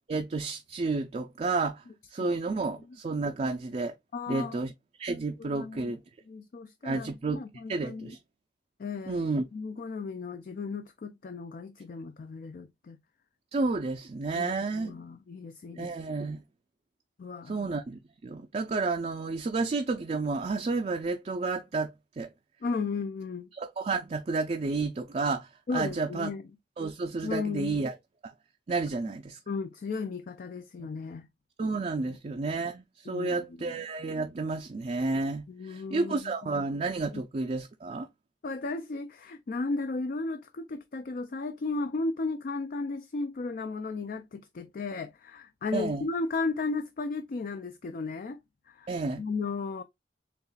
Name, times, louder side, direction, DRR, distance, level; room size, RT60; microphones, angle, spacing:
voice 1, 0.1-1.8 2.1-3.9 4.3-4.7 5.0-6.0 6.8-7.4 7.7-8.2 9.1-9.4 13.5-14.9 15.8-16.4 17.5-22.3 23.5-26.3 26.8-28.0 28.2-28.3 28.7-29.4 30.8-30.9 31.6-38.1 45.7-46.1 48.9-49.2, right 3 dB, 40° right, 0.4 m, -31 dB
voice 2, 4.1-4.6 5.4-5.9 6.3-8.1 8.8-9.3 9.5-13.0 14.3-16.2 17.2-17.7 22.6-23.5 25.7-26.5 27.2-27.9 29.5-31.3 33.1-33.8 35.5-36.3 37.1-37.2 38.4-48.4 48.7-49.8, left 3 dB, 50° left, 0.4 m, -35 dB
6.7 x 2.4 x 2.3 m
head